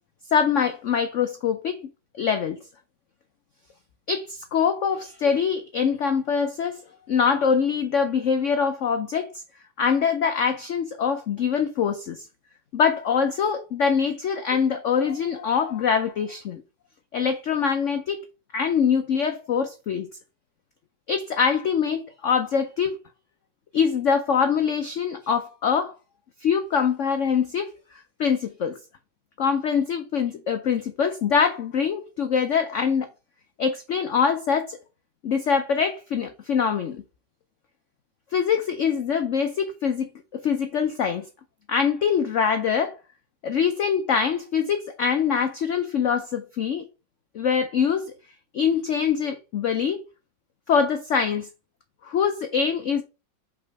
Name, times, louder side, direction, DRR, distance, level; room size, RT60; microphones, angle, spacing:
voice 1, 0.3-1.8 2.2-2.6 4.1-6.8 7.1-9.3 9.8-12.3 12.7-16.6 17.1-18.2 18.5-20.1 21.1-23.0 23.7-25.9 26.4-27.7 28.2-28.8 29.4-33.1 33.6-34.8 35.2-37.0 38.3-41.3 41.7-43.0 43.4-46.8 47.3-48.1 48.5-50.0 50.7-51.5 52.0-53.0, left 6 dB, 70° left, 0.7 m, -24 dB
5.4 x 3.8 x 4.7 m
omnidirectional pair, 2.1 m